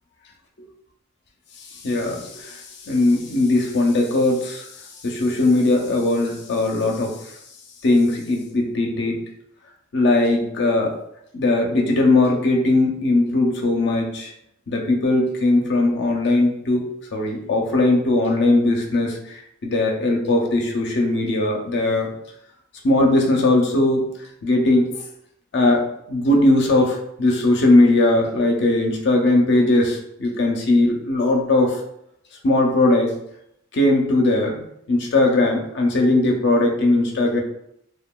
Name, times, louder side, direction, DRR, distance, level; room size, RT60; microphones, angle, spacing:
voice 1, 1.8-2.6 2.9-4.6 5.0-7.1 7.8-9.2 9.9-11.0 11.3-14.3 14.7-19.2 19.6-22.1 22.8-24.1 24.4-25.0 25.5-31.8 32.4-33.1 33.7-37.4, left 2 dB, 60° left, 1 dB, 0.5 m, -19 dB
2.8 x 2.2 x 2.2 m, 0.74 s
head